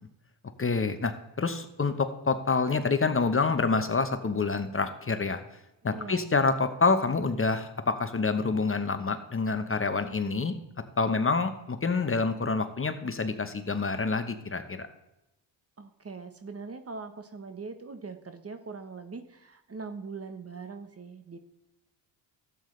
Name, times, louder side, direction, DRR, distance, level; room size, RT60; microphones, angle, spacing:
voice 1, 0.6-5.4 5.8-10.5 11.0-14.9, left 4 dB, 25° left, 9 dB, 0.9 m, -27 dB
voice 2, 5.8-6.2 15.8-21.4, right 4 dB, 30° right, 9 dB, 1.0 m, -41 dB
12.5 x 8.5 x 3.2 m, 0.93 s
cardioid pair, 70°, 47 cm